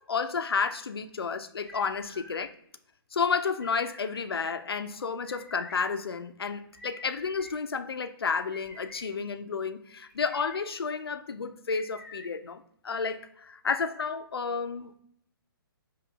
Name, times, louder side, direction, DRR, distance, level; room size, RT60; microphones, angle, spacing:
voice 1, 0.0-2.5 3.1-14.9, left 5 dB, 85° left, 0.4 m, -31 dB
sound 1, 1.6-2.4 3.6-4.2 5.2-5.8 6.7-7.5 8.5-9.1 10.1-10.6 11.7-12.3, left 2 dB, ahead, 0.9 m, -48 dB
5.1 x 3.0 x 2.2 m
figure-of-eight pair, 135°, 12 cm